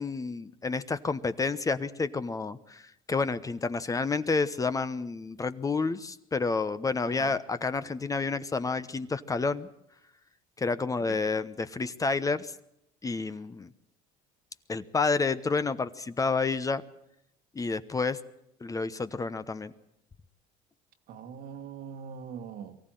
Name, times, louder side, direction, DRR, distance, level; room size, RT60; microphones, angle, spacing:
voice 1, 0.0-9.7 10.6-12.5 13.0-13.7 14.7-16.8 17.5-18.2 18.6-19.7, left 4 dB, 20° left, 1.0 m, -29 dB
voice 2, 7.1-7.4 11.1-11.2 21.1-22.8, right 7 dB, 65° right, 1.8 m, -42 dB
23.5 x 15.0 x 9.1 m
supercardioid pair, 105°, 16 cm